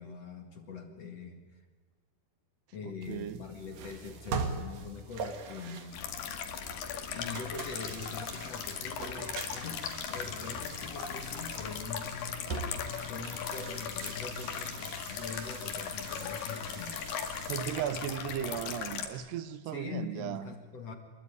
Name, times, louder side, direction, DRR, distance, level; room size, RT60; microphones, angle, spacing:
voice 1, 0.0-1.6 2.7-6.1 7.1-12.1 13.1-17.1 19.7-20.9, left 5 dB, 45° left, 2.5 m, -43 dB
voice 2, 2.9-3.4 17.5-20.5, right 10 dB, 80° right, 3.1 m, -36 dB
sound 1, 3.0-17.7, right 4 dB, 60° right, 3.5 m, -43 dB
sound 2, 5.9-19.1, left 7 dB, 70° left, 3.9 m, -38 dB
27.5 x 22.0 x 9.6 m
omnidirectional pair, 4.8 m